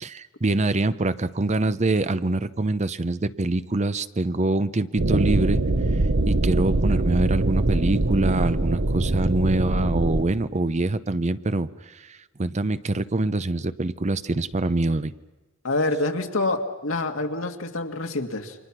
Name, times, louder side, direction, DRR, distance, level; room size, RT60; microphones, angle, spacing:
voice 1, 0.0-5.6 6.3-15.1, right 2 dB, 35° right, 14 dB, 0.7 m, -25 dB
sound 1, 5.0-10.2, right 2 dB, 60° right, 1.0 m, -23 dB
voice 2, 15.6-18.6, left 2 dB, 85° left, 5 dB, 2.0 m, -26 dB
29.5 x 25.0 x 6.1 m, 1.2 s
head